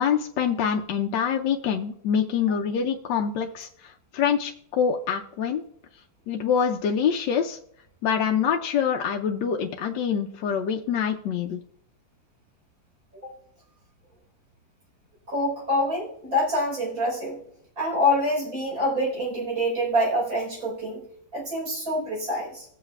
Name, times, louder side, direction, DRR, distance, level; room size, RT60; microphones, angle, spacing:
voice 1, 0.0-5.6 6.3-7.6 8.0-11.6, left 7 dB, 80° left, 2 dB, 1.3 m, -25 dB
voice 2, 15.3-17.4 17.8-21.0 21.3-22.7, left 1 dB, 55° right, -4 dB, 4.8 m, -26 dB
17.5 x 7.6 x 2.3 m, 0.68 s
omnidirectional pair, 1.9 m